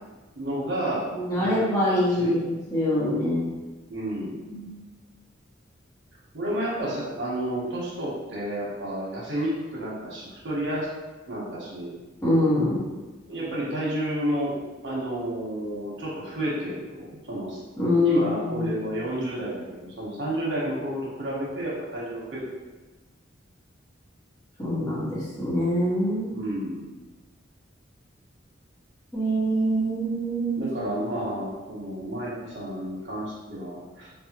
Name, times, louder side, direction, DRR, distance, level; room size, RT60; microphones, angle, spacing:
voice 1, 0.3-1.6 2.1-2.4 3.9-4.4 6.3-10.9 11.3-11.9 13.3-14.6 14.8-17.6 18.0-22.4 26.3-26.8 30.6-34.1, right 1 dB, 65° right, -6 dB, 1.0 m, -30 dB
voice 2, 1.1-3.5 4.5-4.8 12.2-12.8 17.8-18.7 24.6-26.4 29.1-30.7, left 1 dB, 20° left, -8 dB, 1.0 m, -24 dB
4.8 x 2.3 x 2.9 m, 1.2 s
head